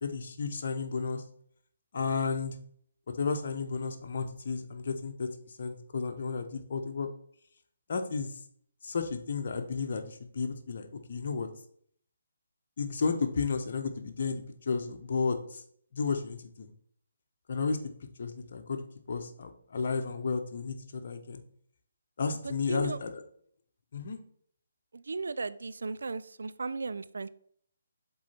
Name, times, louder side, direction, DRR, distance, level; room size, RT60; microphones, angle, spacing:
voice 1, 0.0-1.2 1.9-2.6 3.2-5.3 5.6-7.1 7.9-8.3 8.8-11.5 12.8-15.6 15.9-16.7 17.5-17.8 18.2-21.4 22.2-23.2 23.9-24.2, left 5 dB, 50° left, 5 dB, 1.0 m, -33 dB
voice 2, 22.4-23.0 24.9-27.3, right 4 dB, 65° right, 14 dB, 0.4 m, -36 dB
7.4 x 3.9 x 4.3 m, 0.63 s
figure-of-eight pair, 140°, 0 cm